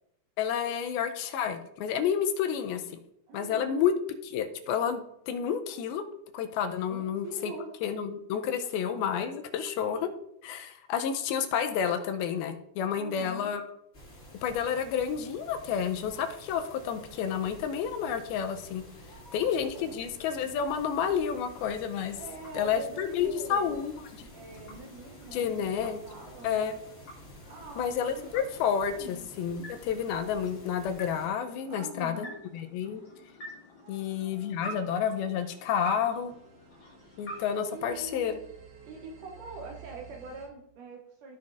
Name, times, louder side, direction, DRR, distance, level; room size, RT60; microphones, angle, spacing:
voice 1, 0.4-3.0 3.3-3.9 4.2-6.0 6.3-7.5 7.8-10.1 10.4-13.6 14.4-18.8 19.3-22.2 22.5-23.9 25.3-26.0 26.4-26.7 27.8-32.2 32.5-33.0 33.9-36.3 37.2-38.3, left 8 dB, 80° left, 7 dB, 2.5 m, -30 dB
voice 2, 3.3-3.9 6.9-7.8 8.6-8.7 9.5-10.2 12.9-13.5 19.0-20.0 22.1-23.8 24.3-26.6 27.5-28.4 28.9-29.2 31.7-32.4 33.8-34.8 37.7-38.4 38.8-41.4, right 3 dB, 75° right, 2 dB, 2.0 m, -45 dB
sound 1, 13.9-31.3, equal, 25° left, 1.6 m, -51 dB
sound 2, 20.8-38.6, left 1 dB, 45° left, 2.0 m, -49 dB
sound 3, 35.1-40.5, right 8 dB, 60° right, 2.9 m, -53 dB
14.5 x 5.7 x 2.5 m, 0.77 s
omnidirectional pair, 4.5 m